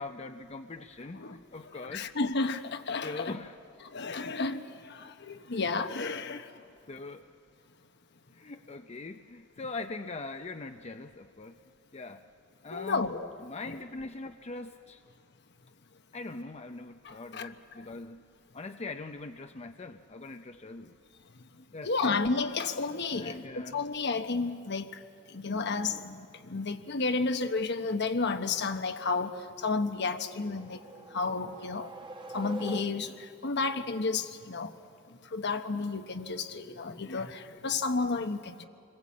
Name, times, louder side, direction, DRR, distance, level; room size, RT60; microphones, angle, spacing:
voice 1, 0.0-2.1 3.0-3.6 6.2-6.5 6.9-7.3 8.3-11.6 11.9-12.3 12.6-13.1 13.4-15.0 16.1-18.2 18.5-20.9 21.7-22.2 23.2-23.9, left 3 dB, 30° left, 7 dB, 0.6 m, -42 dB
voice 2, 1.9-3.3 3.9-6.5 12.7-13.3 17.0-17.5 21.8-24.9 25.3-26.2 26.5-29.3 29.6-30.8 31.1-31.9 32.3-33.1 33.4-34.7 35.3-38.7, left 3 dB, 60° left, 8 dB, 1.1 m, -31 dB
sound 1, 30.2-33.4, right 2 dB, 25° right, 1.1 m, -45 dB
28.0 x 21.5 x 8.5 m, 2.5 s
head